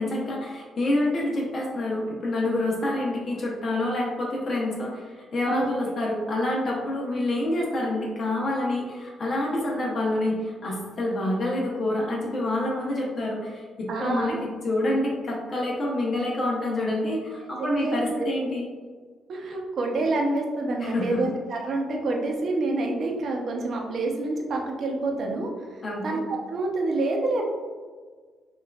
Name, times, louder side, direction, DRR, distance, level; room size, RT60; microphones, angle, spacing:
voice 1, 0.0-18.7 20.8-21.2 25.8-26.1, left 1 dB, 45° left, -3 dB, 0.8 m, -27 dB
voice 2, 13.9-14.4 17.6-18.3 19.3-25.5 26.0-27.5, right 2 dB, 55° right, 1 dB, 0.7 m, -27 dB
5.4 x 2.4 x 2.3 m, 1.5 s
cardioid pair, 90°, 0 cm